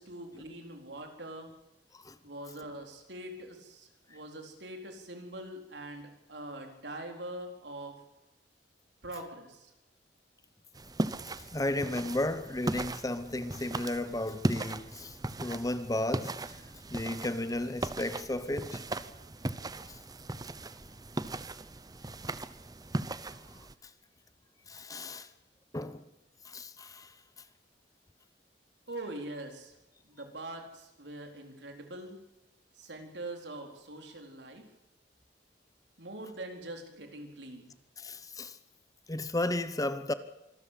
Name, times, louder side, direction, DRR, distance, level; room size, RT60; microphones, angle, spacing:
voice 1, 0.0-1.5 2.2-7.9 9.0-9.7 28.9-29.7 30.1-32.2 32.8-34.7 36.0-37.7, right 1 dB, 75° right, 4.3 m, -43 dB
sound 1, 10.7-23.7, right 2 dB, 20° right, 0.9 m, -37 dB
voice 2, 11.5-16.6 16.9-18.9 24.7-25.3 25.7-26.0 26.4-27.1 38.0-38.6 39.1-40.1, left 1 dB, 20° left, 1.0 m, -34 dB
25.5 x 13.5 x 8.4 m
head